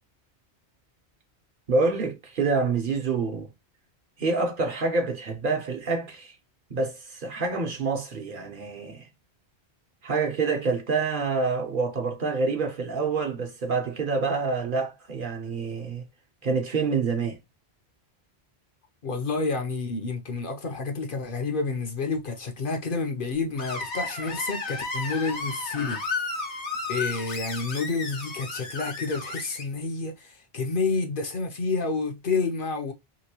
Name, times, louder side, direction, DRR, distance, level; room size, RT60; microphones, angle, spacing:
voice 1, 1.7-3.5 4.2-6.3 6.7-9.1 10.0-16.0 16.4-17.4, right 4 dB, 55° right, 0.8 m, -27 dB
voice 2, 19.0-26.0 26.9-32.9, left 4 dB, 55° left, 0.8 m, -29 dB
Screech, 23.6-29.6, left 3 dB, 85° left, 1.2 m, -33 dB
2.9 x 2.6 x 2.8 m
omnidirectional pair, 1.1 m